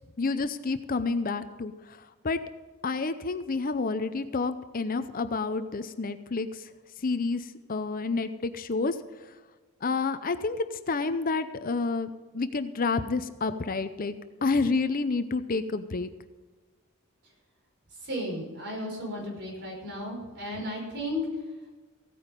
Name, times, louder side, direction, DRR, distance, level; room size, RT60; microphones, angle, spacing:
voice 1, 0.2-2.0 2.2-2.4 2.8-6.6 7.0-9.0 9.8-14.1 14.4-16.1, left 3 dB, 40° left, 11 dB, 0.6 m, -29 dB
voice 2, 18.0-21.2, equal, 55° right, -1 dB, 5.4 m, -34 dB
16.0 x 9.4 x 5.3 m, 1.3 s
head